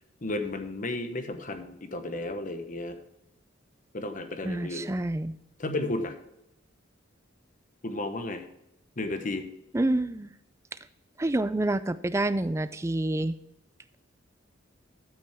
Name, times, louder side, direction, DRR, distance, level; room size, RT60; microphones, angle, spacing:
voice 1, 0.2-3.0 3.9-5.0 5.6-6.1 7.8-8.4 9.0-9.5, left 2 dB, 40° left, 8 dB, 1.0 m, -33 dB
voice 2, 4.4-5.3 9.7-10.3 11.2-13.3, right 1 dB, 15° right, 13 dB, 0.4 m, -28 dB
13.5 x 6.1 x 3.5 m, 0.84 s
head